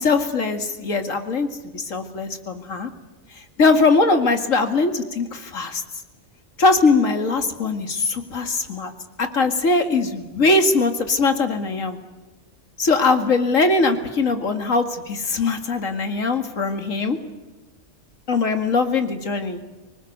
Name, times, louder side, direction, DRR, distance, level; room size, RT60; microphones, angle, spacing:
voice 1, 0.0-1.5 1.7-2.9 3.3-5.8 6.6-8.9 9.2-12.0 12.8-17.2 18.3-19.6, left 3 dB, 65° left, 7 dB, 2.5 m, -21 dB
25.5 x 19.5 x 9.4 m, 1.1 s
omnidirectional pair, 1.5 m